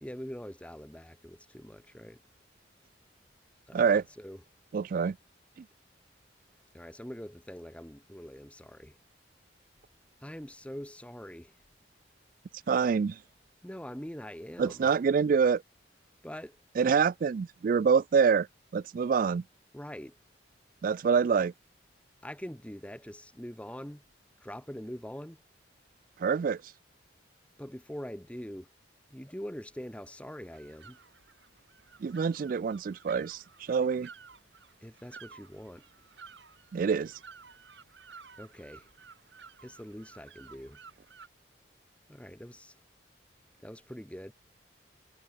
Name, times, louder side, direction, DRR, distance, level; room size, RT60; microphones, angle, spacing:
voice 1, 0.0-2.2 3.7-4.4 6.7-9.0 10.2-11.6 13.6-14.9 16.2-16.6 19.7-20.2 22.2-24.0 24.4-25.4 27.6-28.7 29.1-31.0 34.8-35.9 38.4-38.9 39.6-40.8 42.1-42.8 43.6-44.3, equal, 5° left, 1.1 m, -43 dB
voice 2, 4.7-5.2 12.7-13.2 14.6-15.6 16.8-18.5 18.7-19.4 20.8-21.5 26.2-26.6 32.0-34.1 36.7-37.1, right 6 dB, 45° right, 0.3 m, -26 dB
sound 1, 30.4-41.3, right 5 dB, 75° right, 3.3 m, -54 dB
head